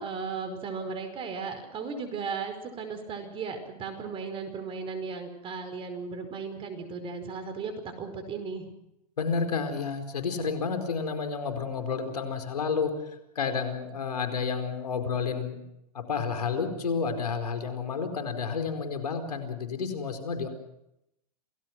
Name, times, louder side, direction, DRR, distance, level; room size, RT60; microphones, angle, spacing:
voice 1, 0.0-8.7, right 5 dB, 25° right, 8 dB, 5.1 m, -36 dB
voice 2, 9.2-15.6 15.9-20.5, left 5 dB, 85° left, 7 dB, 4.6 m, -30 dB
28.0 x 18.5 x 6.1 m, 0.82 s
hypercardioid pair, 120°, 20 cm